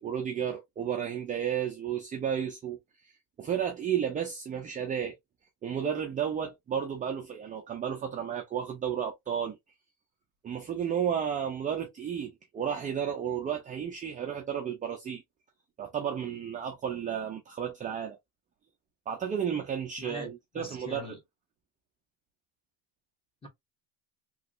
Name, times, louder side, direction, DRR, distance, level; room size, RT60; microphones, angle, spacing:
voice 1, 0.0-2.8 3.4-5.2 5.6-9.6 10.4-15.2 15.8-18.2 19.1-21.1, right 8 dB, 20° right, 0.3 m, -32 dB
voice 2, 20.0-21.2 23.4-23.5, left 1 dB, 10° left, 1.1 m, -42 dB
3.0 x 2.8 x 2.4 m
cardioid pair, 135°, 50 cm